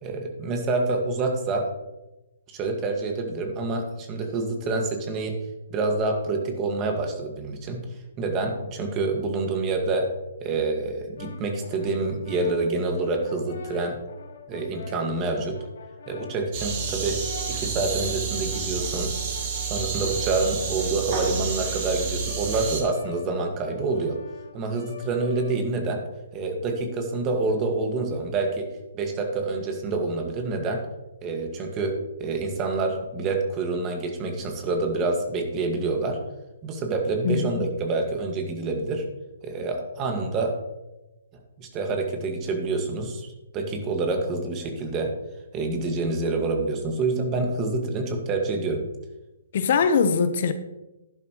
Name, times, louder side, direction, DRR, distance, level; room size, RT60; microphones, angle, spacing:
voice 1, 0.0-1.6 2.5-5.4 5.7-7.9 8.2-10.1 10.4-14.0 14.5-15.6 16.1-17.2 17.5-19.1 19.6-24.2 24.5-26.0 26.3-28.7 28.9-30.9 31.2-36.2 36.6-39.1 39.4-40.6 41.6-45.1 45.5-48.9, right 3 dB, 25° right, 3 dB, 1.9 m, -27 dB
Brass instrument, 11.2-26.0, left 5 dB, 70° left, 1.7 m, -44 dB
sound 1, 16.5-22.8, right 6 dB, 40° right, 2.6 m, -30 dB
voice 2, 37.2-37.7 49.5-50.5, left 5 dB, 55° left, 10 dB, 0.9 m, -22 dB
11.5 x 11.0 x 3.1 m, 1.0 s
hypercardioid pair, 140°, 0 cm